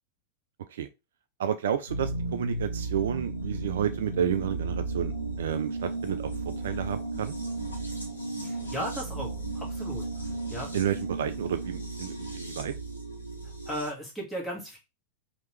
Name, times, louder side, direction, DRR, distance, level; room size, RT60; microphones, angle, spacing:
voice 1, 1.4-6.3 6.6-7.3 10.7-12.7, right 9 dB, 60° right, 0.3 m, -31 dB
sound 1, 1.9-13.9, right 2 dB, 85° left, 0.9 m, -34 dB
voice 2, 8.4-10.0 10.5-10.7 13.7-14.8, equal, 5° left, 1.6 m, -36 dB
3.0 x 2.9 x 3.1 m
figure-of-eight pair, 90°, 0 cm